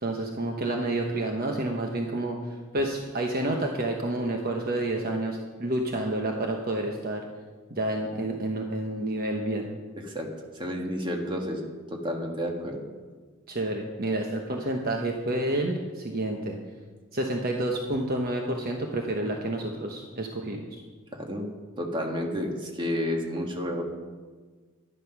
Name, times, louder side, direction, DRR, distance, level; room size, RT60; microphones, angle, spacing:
voice 1, 0.0-7.2 7.7-9.7 13.5-16.6 17.1-20.8, right 1 dB, 45° right, 2 dB, 1.1 m, -29 dB
voice 2, 10.5-12.8 21.1-21.4 21.8-23.8, equal, 20° right, 1 dB, 1.7 m, -31 dB
11.5 x 11.5 x 6.0 m, 1.4 s
head